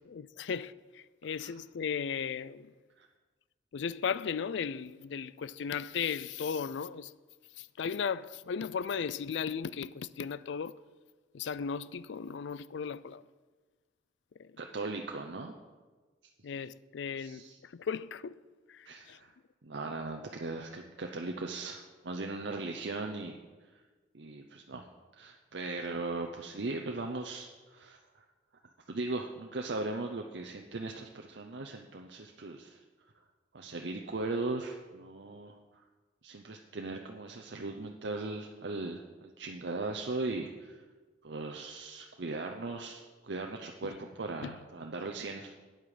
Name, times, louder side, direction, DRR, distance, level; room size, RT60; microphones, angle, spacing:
voice 1, 0.1-2.7 3.7-7.1 7.6-10.8 11.3-13.2 14.4-14.5 16.4-18.4 18.7-19.2 43.8-43.9 44.4-44.5, left 6 dB, 80° left, 0.4 m, -36 dB
voice 2, 14.6-15.5 17.1-17.6 18.9-19.3 19.6-23.4 24.1-24.9 25.2-28.2 28.9-32.8 33.5-35.5 36.2-40.8 41.2-45.5, right 3 dB, 75° right, 0.7 m, -38 dB
12.5 x 9.1 x 4.9 m
head